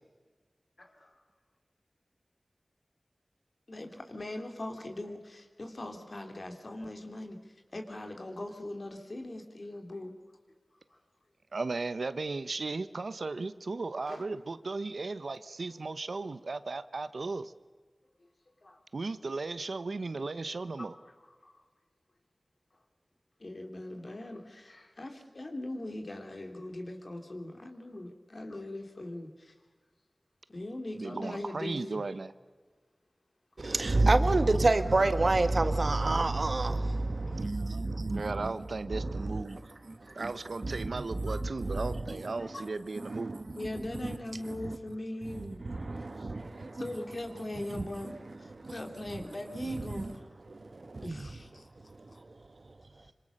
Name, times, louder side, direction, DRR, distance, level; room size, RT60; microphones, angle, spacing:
voice 1, 3.7-10.2 14.1-14.2 18.6-18.8 20.8-20.9 21.4-21.5 23.4-29.5 30.5-32.1 35.7-35.9 40.0-40.2 41.3-41.4 42.4-42.6 43.6-45.6 46.2-46.4 46.7-50.2 51.0-51.7 52.1-52.2, left 1 dB, 55° left, 3.4 m, -41 dB
voice 2, 11.5-17.5 18.9-20.9 31.0-32.3 38.1-39.6 40.1-43.4, right 3 dB, 80° right, 0.9 m, -36 dB
voice 3, 33.6-40.4 40.6-42.6 43.0-44.8 45.2-46.8 47.6-49.2 49.5-53.0, right 2 dB, 60° right, 1.5 m, -31 dB
26.0 x 25.5 x 6.6 m
wide cardioid pair, 65°, 0 cm